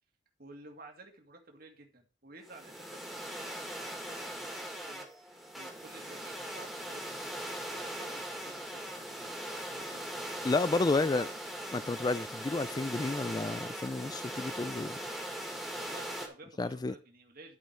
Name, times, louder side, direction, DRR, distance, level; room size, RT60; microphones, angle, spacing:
voice 1, 0.4-10.5 11.0-11.3 11.8-12.0 15.8-17.6, right 2 dB, 50° right, 2.1 m, -53 dB
sound 1, 2.5-16.3, right 1 dB, ahead, 2.0 m, -40 dB
voice 2, 10.4-11.3 11.7-15.0 16.6-16.9, left 3 dB, 20° left, 0.3 m, -31 dB
12.5 x 5.3 x 4.6 m
head